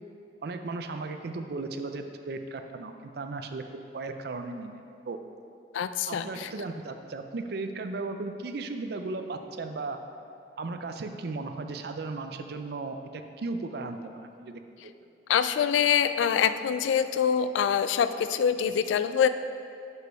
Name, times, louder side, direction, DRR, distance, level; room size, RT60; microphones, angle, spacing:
voice 1, 0.4-4.8 5.1-5.2 6.1-10.0 10.6-14.9, right 3 dB, 60° right, 7 dB, 0.4 m, -36 dB
voice 2, 5.7-6.5 15.3-19.3, left 8 dB, 85° left, 12 dB, 0.3 m, -25 dB
6.2 x 5.5 x 4.6 m, 2.7 s
head